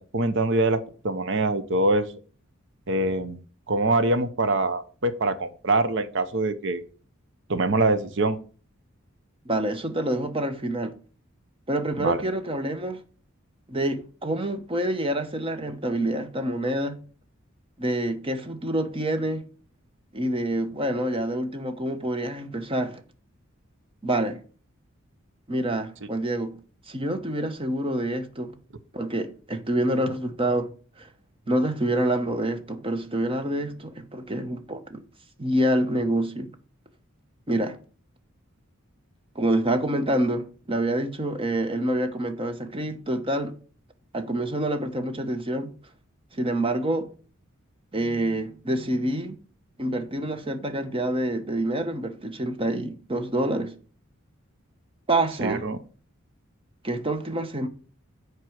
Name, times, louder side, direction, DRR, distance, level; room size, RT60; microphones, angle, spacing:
voice 1, 0.0-2.1 2.9-3.4 3.7-6.8 7.5-8.4 12.0-12.2 55.4-55.8, right 2 dB, 60° right, 0.8 m, -24 dB
voice 2, 9.5-10.9 11.7-13.0 13.7-17.0 17.8-19.4 20.1-23.0 24.0-24.4 25.5-26.6 26.9-28.5 28.9-30.7 31.0-31.1 31.5-35.0 35.4-36.5 37.5-37.8 39.3-43.6 44.1-45.7 46.3-47.1 47.9-49.4 49.8-53.7 55.1-55.6 56.8-57.7, right 1 dB, 25° right, 0.9 m, -27 dB
7.5 x 4.7 x 6.3 m
head